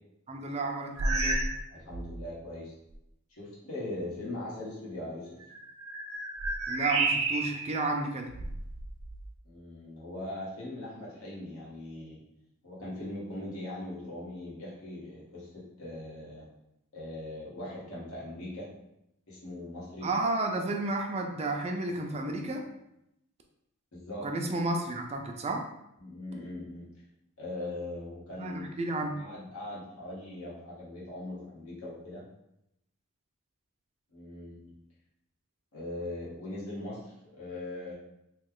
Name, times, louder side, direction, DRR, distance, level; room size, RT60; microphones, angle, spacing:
voice 1, 0.3-1.4 6.7-8.3 20.0-22.6 24.2-25.6 28.4-29.2, right 2 dB, 30° right, 2 dB, 0.4 m, -32 dB
sound 1, 1.0-1.6 1.9-2.2 2.9-3.0 5.4-7.7 8.3-9.3, right 3 dB, 85° right, 0.6 m, -31 dB
voice 2, 1.7-2.8 3.3-5.4 9.4-12.2 12.6-16.5 16.9-18.7 19.3-20.1 23.9-24.3 26.0-26.9 27.4-28.7 29.2-32.2 34.1-34.8 35.7-37.9, left 1 dB, 80° left, -7 dB, 1.3 m, -40 dB
3.1 x 2.2 x 3.6 m, 0.82 s
head